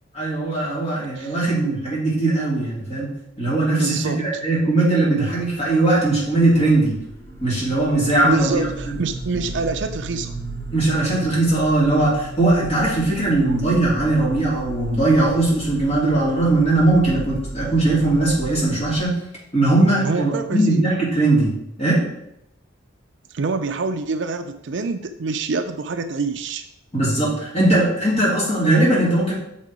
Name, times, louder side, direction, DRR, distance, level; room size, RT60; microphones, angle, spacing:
voice 1, 0.1-3.1 3.4-7.0 7.4-9.0 10.7-19.1 19.5-21.5 21.8-22.0 26.9-29.3, right 2 dB, 30° left, -6 dB, 2.9 m, -19 dB
voice 2, 3.7-4.3 8.2-10.3 13.5-13.6 20.0-20.8 23.3-26.6, right 4 dB, 60° right, 8 dB, 0.4 m, -26 dB
sound 1, 6.0-19.0, right 2 dB, 10° left, 1.1 m, -35 dB
6.7 x 4.3 x 4.7 m, 0.79 s
head